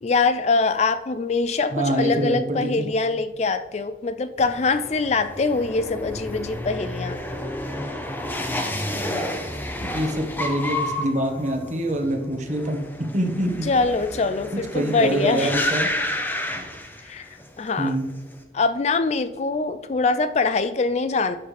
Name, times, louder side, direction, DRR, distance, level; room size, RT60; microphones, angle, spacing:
voice 1, 0.0-7.2 13.7-15.5 17.0-17.3 17.6-18.0 18.5-21.4, left 4 dB, 35° left, 12 dB, 0.3 m, -23 dB
voice 2, 1.7-2.9 9.8-12.8 13.1-13.7 14.5-15.9 17.8-18.0, right 1 dB, 40° right, 3 dB, 1.3 m, -25 dB
sound 1, 4.4-17.5 17.8-18.3, left 1 dB, 10° left, 0.8 m, -30 dB
12.5 x 7.4 x 3.3 m, 1.3 s
head